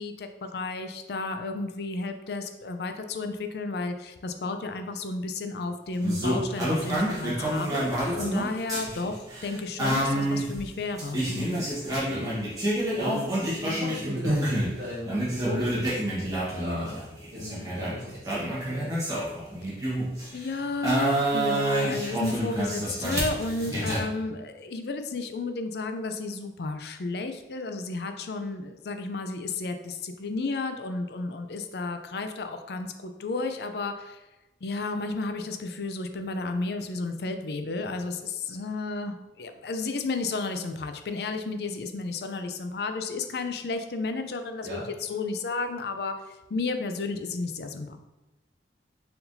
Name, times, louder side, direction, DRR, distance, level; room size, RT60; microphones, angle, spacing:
voice 1, 0.0-11.7 20.3-34.2 34.6-48.0, left 3 dB, 65° left, 7 dB, 0.4 m, -32 dB
sound 1, 6.0-14.8 15.1-20.3 20.8-24.0, right 1 dB, 20° right, 1.2 m, -28 dB
voice 2, 8.0-8.4 11.9-12.3 12.9-17.0 17.3-18.9 23.5-23.8 44.6-44.9, equal, 65° right, -7 dB, 1.1 m, -37 dB
4.6 x 3.6 x 2.6 m, 1.0 s
head